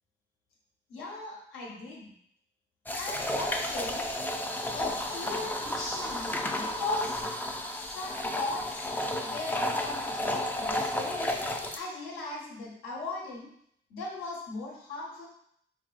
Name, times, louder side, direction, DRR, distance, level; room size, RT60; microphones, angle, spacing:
voice 1, 0.9-2.1 3.0-4.1 4.7-7.2 7.8-8.9 9.2-11.4 11.7-13.5 13.9-15.3, left 2 dB, 85° left, -3 dB, 1.3 m, -38 dB
sound 1, 2.9-11.8, left 1 dB, 10° left, 0.3 m, -32 dB
4.6 x 3.0 x 2.4 m, 0.69 s
cardioid pair, 115°, 21 cm